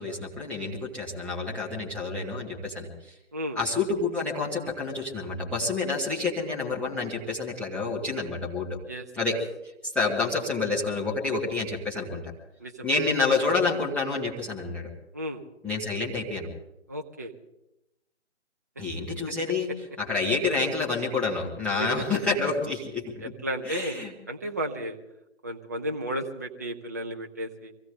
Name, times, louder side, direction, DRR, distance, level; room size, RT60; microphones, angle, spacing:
voice 1, 0.0-2.9 3.5-8.8 9.1-9.4 9.9-12.2 12.8-14.9 15.6-16.5 18.8-19.7 20.0-23.1 23.6-24.1, left 3 dB, 5° left, -6 dB, 1.4 m, -28 dB
voice 2, 12.6-12.9 15.1-15.4 16.9-17.3 21.8-22.2 23.2-25.0 25.4-27.7, right 1 dB, 15° right, 2 dB, 0.5 m, -33 dB
24.0 x 16.0 x 3.8 m, 0.90 s
figure-of-eight pair, 140°, 35 cm